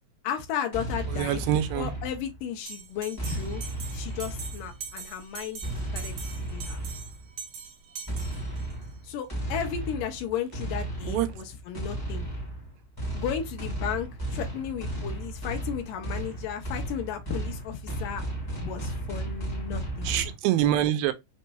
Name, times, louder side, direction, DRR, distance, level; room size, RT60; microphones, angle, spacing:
voice 1, 0.2-5.6 5.9-6.8 9.0-12.3 13.1-18.2 18.5-20.1, left 9 dB, 75° left, 2.2 m, -34 dB
sound 1, 0.7-2.5 3.2-4.9 5.6-7.3 8.1-20.3, right 1 dB, 15° left, 0.8 m, -34 dB
voice 2, 1.1-1.9 11.1-11.3 20.0-21.1, right 12 dB, 85° right, 2.5 m, -25 dB
Bell, 2.7-8.9, right 6 dB, 65° right, 2.1 m, -42 dB
6.0 x 2.9 x 2.2 m
omnidirectional pair, 4.2 m